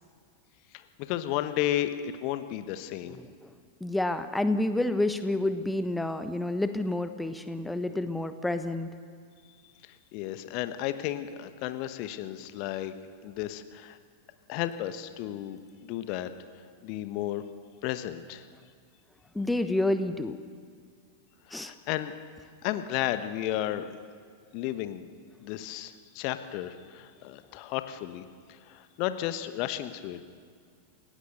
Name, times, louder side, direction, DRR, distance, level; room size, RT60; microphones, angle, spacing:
voice 1, 0.7-3.2 9.8-12.9 13.2-14.0 14.5-16.3 16.8-17.5 17.8-18.5 21.5-22.1 22.6-24.0 24.5-25.1 25.4-30.2, left 13 dB, 45° left, 11 dB, 1.1 m, -33 dB
voice 2, 3.1-3.5 3.8-8.9 19.3-20.4 21.5-21.7, left 1 dB, 5° left, 10 dB, 1.1 m, -29 dB
29.0 x 16.5 x 6.8 m, 2.1 s
figure-of-eight pair, 90°, 0 cm